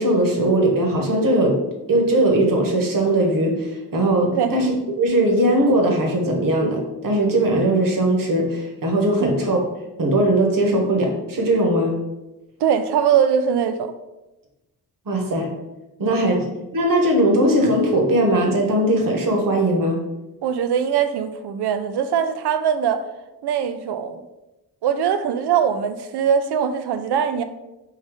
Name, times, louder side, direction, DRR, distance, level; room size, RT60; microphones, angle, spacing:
voice 1, 0.0-1.6 1.9-9.6 10.0-12.0 15.1-15.5 16.0-16.5 16.7-20.0, right 1 dB, 55° right, 1 dB, 1.1 m, -19 dB
voice 2, 12.6-13.9 20.4-23.1 23.4-24.2 24.8-27.4, right 8 dB, 80° right, 10 dB, 0.5 m, -21 dB
3.9 x 2.7 x 4.8 m, 1.0 s
cardioid pair, 90°, 40 cm